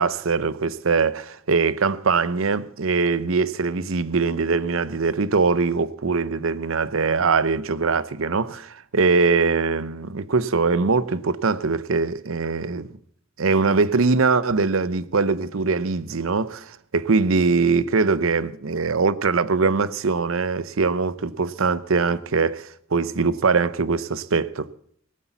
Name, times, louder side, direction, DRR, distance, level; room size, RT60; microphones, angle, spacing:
voice 1, 0.0-12.9 13.4-24.7, right 4 dB, 75° right, 0.7 m, -22 dB
19.0 x 8.4 x 7.2 m
head